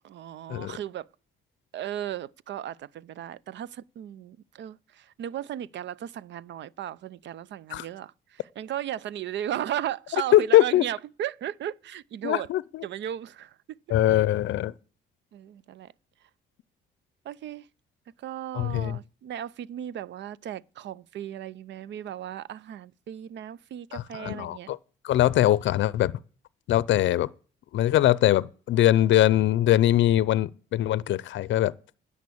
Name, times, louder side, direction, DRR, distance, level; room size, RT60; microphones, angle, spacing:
voice 1, 0.0-1.1 1.7-12.5 12.8-13.8 14.1-14.2 15.3-15.9 17.2-17.7 18.2-24.7, right 11 dB, 65° right, 0.5 m, -36 dB
voice 2, 10.3-10.8 12.2-12.8 13.9-14.7 18.5-19.0 23.9-24.8 25.0-26.1 26.7-27.3 27.7-31.7, left 13 dB, 70° left, 0.6 m, -22 dB
10.5 x 7.3 x 8.5 m
cardioid pair, 90°, 20 cm